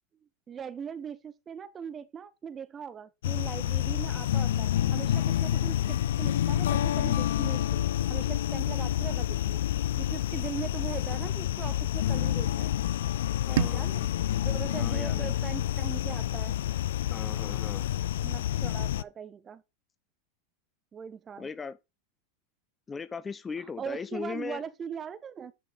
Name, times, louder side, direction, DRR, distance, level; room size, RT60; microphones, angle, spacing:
voice 1, 0.5-9.6 10.0-12.7 13.7-16.6 18.2-19.6 20.9-21.5 23.6-25.5, right 7 dB, 30° right, 1.0 m, -40 dB
sound 1, 3.2-19.0, left 12 dB, 70° left, 0.3 m, -28 dB
voice 2, 13.5-13.9 14.8-15.3 17.1-17.9 21.4-21.8 22.9-24.6, left 5 dB, 20° left, 0.7 m, -38 dB
sound 2, 13.5-16.5, right 14 dB, 70° right, 0.4 m, -36 dB
10.0 x 5.7 x 4.0 m
hypercardioid pair, 90°, 0 cm